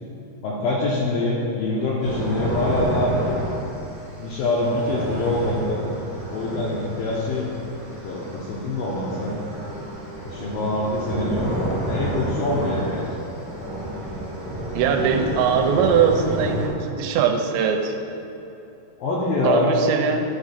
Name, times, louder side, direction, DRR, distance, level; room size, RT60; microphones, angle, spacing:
voice 1, 0.4-3.1 4.2-5.8 6.3-7.5 8.0-9.4 10.3-13.4 19.0-19.7, left 2 dB, 80° left, -4 dB, 2.2 m, -25 dB
sound 1, 2.0-16.7, right 1 dB, 50° right, 0.9 m, -30 dB
voice 2, 14.7-17.9 19.4-20.2, right 6 dB, 90° right, 4 dB, 2.9 m, -21 dB
10.5 x 3.7 x 5.8 m, 2.9 s
omnidirectional pair, 5.0 m